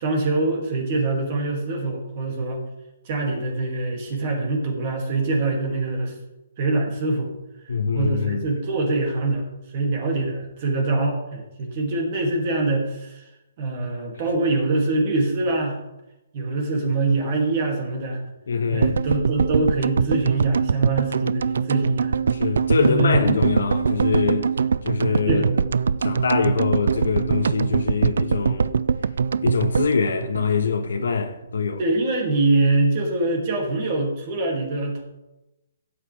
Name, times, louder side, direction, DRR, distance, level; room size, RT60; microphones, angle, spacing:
voice 1, 0.0-2.6 3.0-6.2 6.6-7.3 7.9-13.3 13.6-15.8 16.3-18.2 18.7-22.1 22.8-23.4 25.3-25.5 31.8-35.0, right 2 dB, 30° right, 2.5 m, -24 dB
voice 2, 7.7-8.4 18.5-19.0 22.3-24.5 24.8-25.6 26.0-28.7 29.4-31.8, left 5 dB, 85° left, 1.3 m, -24 dB
sound 1, 18.8-31.0 31.3-31.4 31.6-31.7, right 6 dB, 70° right, 0.4 m, -23 dB
16.5 x 8.5 x 3.4 m
hypercardioid pair, 175°, 0 cm